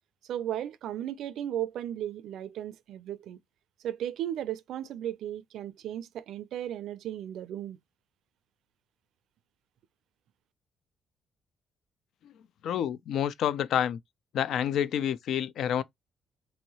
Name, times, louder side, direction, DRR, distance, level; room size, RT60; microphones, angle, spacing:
voice 1, 0.3-3.4 3.8-7.8, right 11 dB, 80° right, 0.4 m, -35 dB
voice 2, 12.6-14.0 14.3-15.8, left 9 dB, 75° left, 0.3 m, -28 dB
3.1 x 2.7 x 2.7 m
cardioid pair, 90°, 0 cm